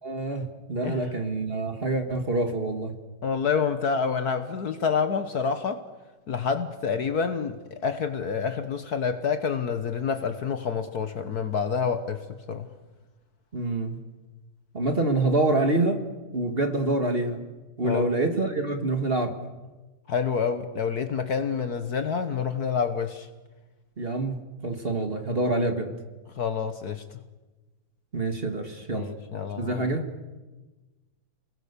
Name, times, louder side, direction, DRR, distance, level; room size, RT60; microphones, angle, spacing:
voice 1, 0.0-2.9 13.5-14.0 14.7-16.1 16.3-17.4 17.8-19.4 24.0-25.9 28.1-29.1 29.6-30.1, right 2 dB, 30° right, 5 dB, 2.0 m, -26 dB
voice 2, 3.2-5.8 6.3-12.2 12.5-12.7 17.8-18.1 20.1-23.3 26.4-27.0 28.9-29.9, left 6 dB, 55° left, 9 dB, 1.5 m, -28 dB
29.5 x 21.0 x 6.9 m, 1.2 s
omnidirectional pair, 2.2 m